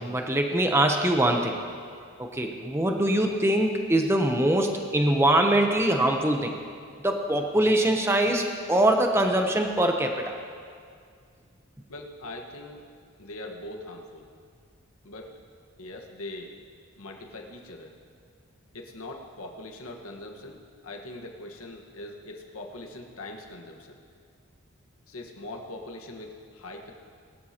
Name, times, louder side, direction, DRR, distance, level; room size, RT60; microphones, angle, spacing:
voice 1, 0.0-1.6 2.2-6.6 7.0-10.3, right 1 dB, 10° right, 3 dB, 0.7 m, -23 dB
voice 2, 11.9-12.9 13.2-14.3 15.0-15.3 15.8-16.5 17.0-17.9 18.7-24.0 25.1-26.9, left 2 dB, 85° left, 1 dB, 1.4 m, -41 dB
20.5 x 12.5 x 2.9 m, 2.2 s
head